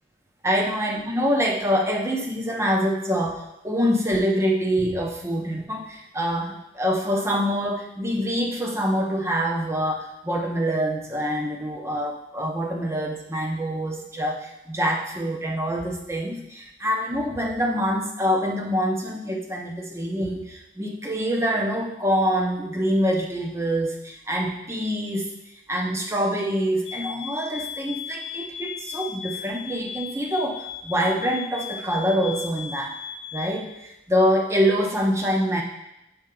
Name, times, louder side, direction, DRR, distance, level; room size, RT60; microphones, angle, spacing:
voice 1, 0.4-25.3 25.7-32.9 33.3-35.6, equal, 15° right, 1 dB, 0.6 m, -25 dB
sound 1, 26.8-33.6, left 7 dB, 90° left, 0.6 m, -37 dB
7.4 x 4.3 x 3.8 m, 0.89 s
head